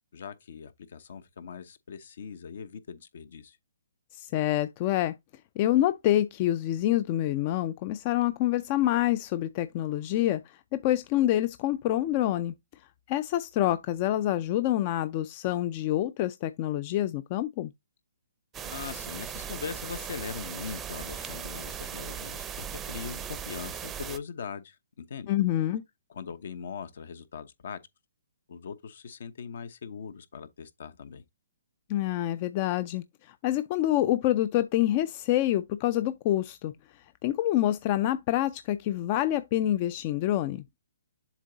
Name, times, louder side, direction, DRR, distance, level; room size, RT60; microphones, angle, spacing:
voice 1, 0.1-3.6 18.6-25.3 26.1-27.8 28.5-31.2, left 6 dB, 60° left, 0.9 m, -41 dB
voice 2, 4.2-5.1 5.6-12.5 13.1-17.7 25.3-25.8 31.9-36.7 37.2-40.6, left 13 dB, 30° left, 0.4 m, -27 dB
sound 1, 18.5-24.2, right 8 dB, 15° right, 0.6 m, -38 dB
7.3 x 3.7 x 3.9 m
hypercardioid pair, 155°, 0 cm